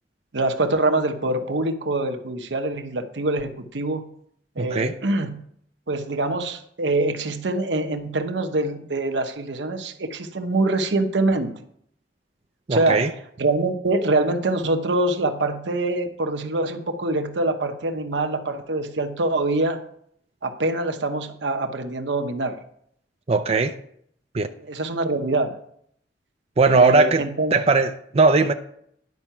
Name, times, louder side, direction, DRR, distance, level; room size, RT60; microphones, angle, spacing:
voice 1, 0.3-4.1 4.6-5.4 5.9-11.5 12.7-13.1 13.4-19.8 20.4-22.6 24.6-25.6 26.7-27.6, right 2 dB, 80° right, 7 dB, 1.0 m, -24 dB
voice 2, 4.6-4.9 12.7-13.1 23.3-23.7 24.3-24.5 26.6-27.2 27.5-28.5, right 3 dB, 35° right, 7 dB, 0.5 m, -18 dB
10.5 x 5.5 x 5.9 m, 0.67 s
head